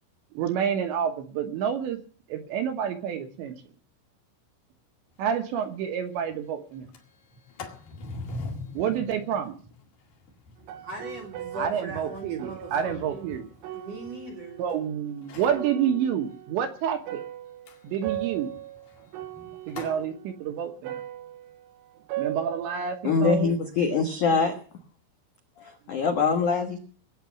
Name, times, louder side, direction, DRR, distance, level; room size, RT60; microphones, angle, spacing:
voice 1, 0.3-2.0 2.3-3.6 5.2-6.9 8.7-9.6 11.5-13.5 14.6-17.2 17.8-18.6 19.7-21.0 22.2-23.5, right 8 dB, 70° right, 6 dB, 3.1 m, -28 dB
Sliding door, 5.2-5.3 5.6-5.7 6.1-6.4 6.7-14.7 15.2-15.7 17.7-20.0, left 3 dB, 50° left, 3.2 m, -43 dB
sound 1, 10.6-15.0 15.4-23.0, right 14 dB, 85° right, 3.9 m, -39 dB
voice 2, 10.8-13.3 13.7-14.6, right 1 dB, 50° right, 1 dB, 2.0 m, -39 dB
voice 3, 23.0-24.5 25.6-26.8, left 5 dB, 75° left, 4 dB, 1.8 m, -24 dB
20.0 x 9.0 x 7.0 m, 0.43 s
omnidirectional pair, 6.0 m